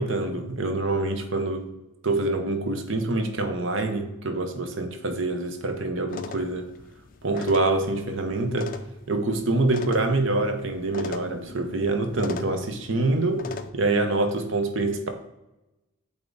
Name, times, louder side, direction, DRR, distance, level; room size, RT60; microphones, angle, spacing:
voice 1, 0.0-1.7 2.0-6.7 7.2-8.8 9.1-15.1, right 2 dB, 60° right, 6 dB, 0.9 m, -26 dB
sound 1, 6.1-13.7, left 4 dB, 40° left, 0.4 m, -40 dB
8.6 x 3.6 x 4.0 m, 0.95 s
head